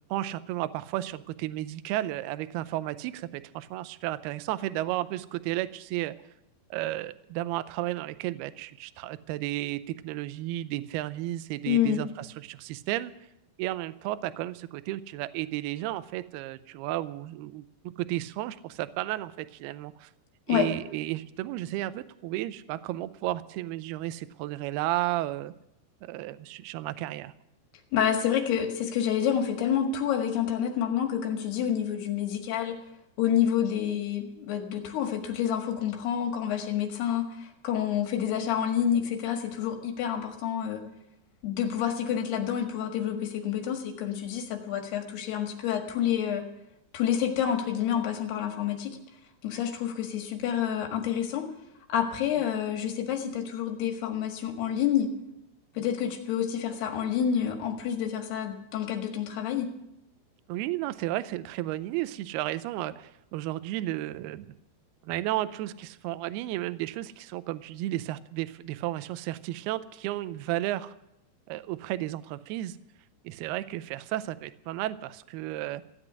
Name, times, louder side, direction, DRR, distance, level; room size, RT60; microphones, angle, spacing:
voice 1, 0.1-6.2 6.7-13.1 13.6-20.1 20.5-25.5 26.0-27.3 55.8-55.9 60.5-64.5 65.0-70.9 71.5-72.8 73.2-75.8, right 15 dB, 80° right, 13 dB, 2.4 m, -33 dB
voice 2, 11.7-12.0 20.5-20.7 27.9-32.8 33.2-40.8 41.4-46.4 46.9-49.0 49.4-51.5 51.9-55.1 55.8-59.7, left 9 dB, 70° left, 4 dB, 3.6 m, -28 dB
16.0 x 8.1 x 10.0 m, 0.83 s
omnidirectional pair, 5.1 m